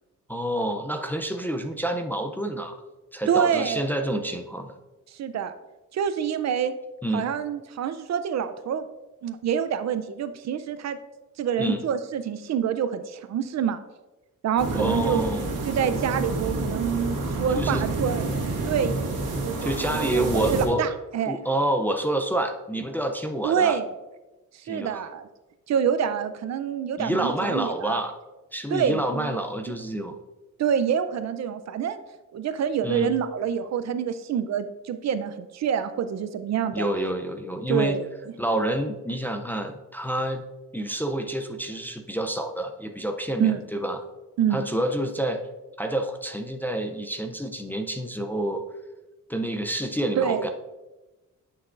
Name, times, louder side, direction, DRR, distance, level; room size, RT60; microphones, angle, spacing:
voice 1, 0.3-2.8 3.1-4.7 7.0-7.3 11.6-11.9 14.7-15.5 17.5-17.9 19.6-20.8 21.3-23.8 24.7-25.0 27.0-28.1 28.5-30.2 32.8-33.1 36.7-38.0 38.4-40.4 40.7-44.0 44.5-45.5 45.8-48.6 49.3-50.5, right 1 dB, 5° left, 4 dB, 0.4 m, -28 dB
voice 2, 3.3-3.9 5.1-5.5 5.9-6.7 7.1-8.9 9.2-11.0 11.4-13.8 14.4-15.3 15.7-18.2 18.6-19.1 19.4-21.4 23.4-23.9 24.5-25.3 25.7-28.0 28.7-29.4 29.7-29.8 30.6-32.0 32.3-36.9 37.7-38.1 43.4-43.6 44.4-44.6 50.2-50.5, right 8 dB, 55° right, 12 dB, 0.5 m, -26 dB
sound 1, 14.6-20.7, right 2 dB, 80° right, 1.8 m, -29 dB
9.6 x 6.0 x 2.5 m, 1.1 s
cardioid pair, 135°, 32 cm